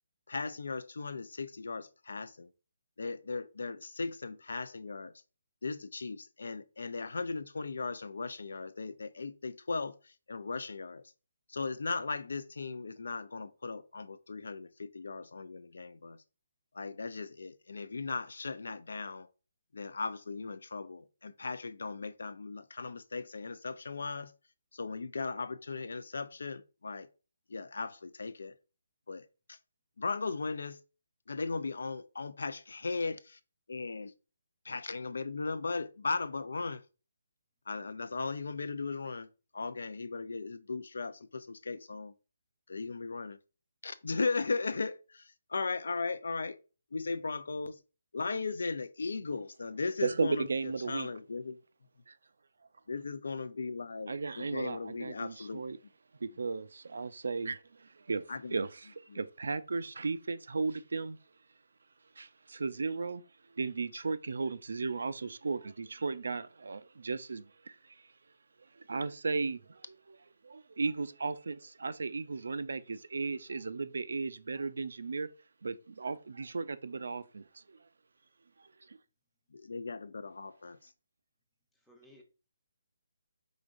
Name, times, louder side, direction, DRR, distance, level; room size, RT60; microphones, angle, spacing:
voice 1, 0.3-2.5 3.0-5.1 5.6-11.1 11.5-16.2 16.7-19.3 19.7-24.3 24.7-27.1 27.5-28.5 29.1-29.6 30.0-30.8 31.3-33.4 33.7-34.1 34.6-36.8 37.7-39.3 39.5-42.1 42.7-43.4 43.8-46.6 46.9-47.8 48.1-51.6 52.9-55.6 58.3-58.6 59.1-59.2 79.5-80.9, left 4 dB, 75° left, 0.5 m, -37 dB
voice 2, 50.0-51.1 52.1-52.2 54.1-55.8 56.2-61.2 62.2-63.2 63.6-67.7 68.9-69.8 70.1-70.2 70.4-75.3 75.6-77.4, right 4 dB, 70° right, 0.4 m, -35 dB
voice 3, 53.4-54.1 81.7-82.2, left 1 dB, ahead, 0.7 m, -62 dB
4.9 x 3.9 x 2.5 m
hypercardioid pair, 175°, 0 cm